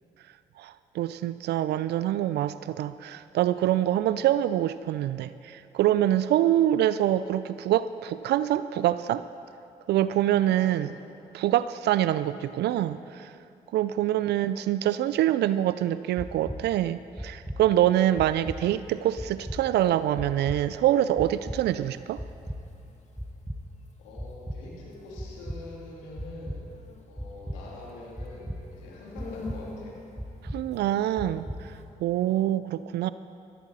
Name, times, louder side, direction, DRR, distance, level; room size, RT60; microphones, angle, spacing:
voice 1, 0.6-9.2 9.9-10.9 11.3-13.3 13.7-22.2 30.5-31.5 32.0-33.1, right 12 dB, 65° right, 15 dB, 0.4 m, -25 dB
voice 2, 10.3-10.8 13.9-14.1 24.0-26.7 27.1-30.0 32.2-32.6, left 2 dB, 85° left, -4 dB, 3.0 m, -45 dB
sound 1, 16.2-16.6 17.2-17.6 18.2-18.6 19.2-19.6 20.2-20.6 21.2-21.6 22.2-22.6 23.2-23.6 24.2-24.6 25.2-25.6 26.2-26.6 27.2-27.6 28.2-28.6 29.2-29.6 30.2-30.6 31.2-31.6, equal, 5° right, 1.3 m, -35 dB
sound 2, 17.9-31.8, left 3 dB, 40° left, 2.1 m, -50 dB
15.0 x 15.0 x 4.2 m, 2.7 s
hypercardioid pair, 50°, 18 cm